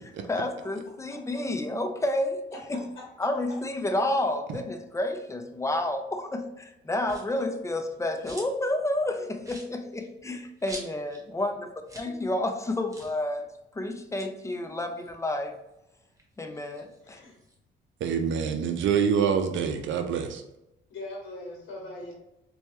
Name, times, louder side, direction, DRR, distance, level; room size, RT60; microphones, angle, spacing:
voice 1, 0.3-2.8 3.2-13.5 13.7-15.6 16.4-17.2, left 1 dB, 15° left, 5 dB, 0.5 m, -30 dB
voice 2, 2.5-3.1 17.0-17.4 18.1-18.2 20.9-22.1, left 2 dB, 75° left, -1 dB, 0.9 m, -41 dB
sound 1, 7.0-7.4 7.9-8.7 9.0-9.1 9.4-11.3 11.5-11.6 11.8-12.2 12.4-12.5 12.9-13.2 14.0-15.7 16.1-17.6, right 1 dB, 15° right, 1.0 m, -46 dB
voice 3, 18.0-20.4, right 7 dB, 75° right, 6 dB, 0.5 m, -26 dB
4.3 x 2.3 x 2.8 m, 0.91 s
cardioid pair, 90°, 20 cm